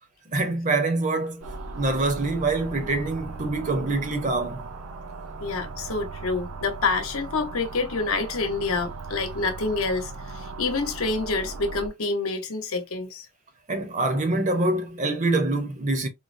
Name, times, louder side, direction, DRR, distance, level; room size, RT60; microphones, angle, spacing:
voice 1, 0.3-1.4 1.7-4.7 13.7-16.1, right 2 dB, 35° right, 0.6 m, -25 dB
sound 1, 1.4-11.9, right 3 dB, 85° right, 0.7 m, -38 dB
voice 2, 5.4-13.3, left 3 dB, 80° left, 0.8 m, -27 dB
3.7 x 2.0 x 2.5 m
head